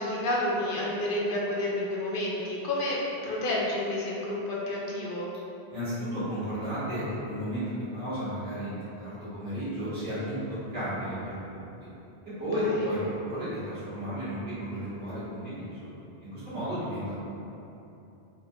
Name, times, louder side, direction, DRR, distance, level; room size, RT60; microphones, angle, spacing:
voice 1, 0.0-5.3, left 1 dB, 60° left, -5 dB, 0.7 m, -30 dB
voice 2, 5.7-10.4 10.7-11.2 11.5-11.6 12.4-15.9 16.2-17.1, equal, 75° right, -13 dB, 1.7 m, -33 dB
4.1 x 2.2 x 2.6 m, 2.9 s
omnidirectional pair, 1.1 m